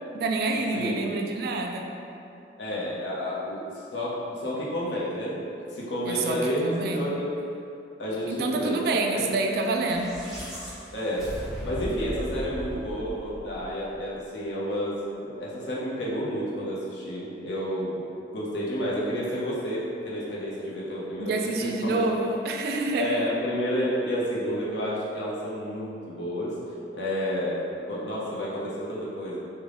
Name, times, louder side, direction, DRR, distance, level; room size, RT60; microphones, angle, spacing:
voice 1, 0.1-1.9 6.0-7.0 8.3-10.1 21.2-23.3, right 2 dB, 60° right, 3 dB, 0.3 m, -27 dB
voice 2, 0.7-1.2 2.6-7.3 8.0-9.2 10.9-11.3 11.6-18.0 18.3-22.0 23.0-26.6 26.9-29.4, equal, 80° left, -6 dB, 0.7 m, -30 dB
sound 1, 9.7-14.1, equal, ahead, 0.7 m, -38 dB
3.6 x 2.2 x 3.3 m, 2.7 s
head